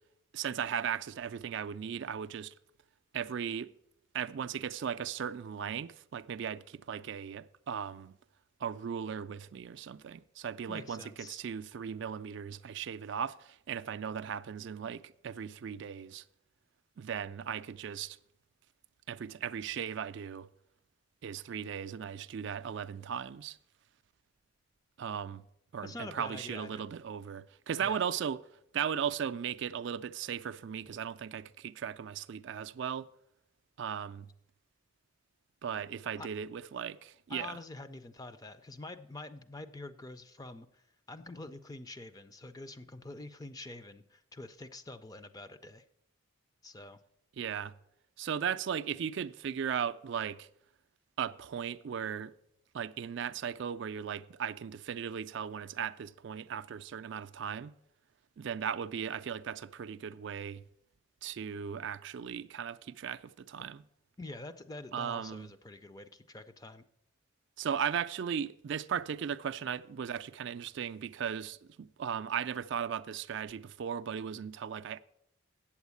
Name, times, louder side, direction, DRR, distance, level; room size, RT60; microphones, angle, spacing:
voice 1, 0.3-2.5 3.1-3.7 4.1-8.2 8.6-16.2 17.0-18.2 19.1-20.5 21.2-23.6 25.0-25.4 25.7-28.4 28.7-33.1 33.8-34.3 35.6-37.6 47.4-47.7 48.2-50.5 51.2-52.3 52.7-57.7 58.4-60.6 61.2-63.8 64.9-65.5 67.6-75.0, right 8 dB, 55° right, 0.3 m, -37 dB
voice 2, 10.7-11.4 25.8-26.8 27.8-28.0 36.2-36.3 37.3-45.8 46.6-47.0 64.2-66.8, left 2 dB, 15° left, 0.4 m, -46 dB
8.9 x 7.2 x 8.2 m
head